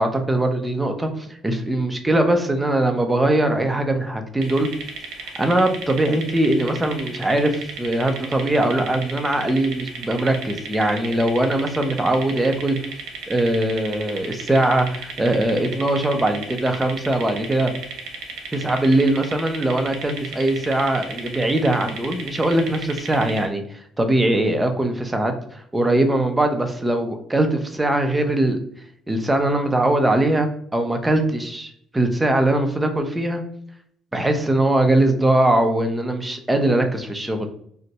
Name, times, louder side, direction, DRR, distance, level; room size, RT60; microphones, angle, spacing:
voice 1, 0.0-4.7 5.4-12.8 13.3-17.7 18.5-23.6 24.0-28.6 29.1-33.4 34.1-37.5, right 1 dB, 10° right, 5 dB, 0.5 m, -21 dB
sound 1, 4.4-23.5, right 4 dB, 85° right, 0.7 m, -34 dB
2.7 x 2.1 x 4.0 m, 0.65 s
cardioid pair, 120°, 0 cm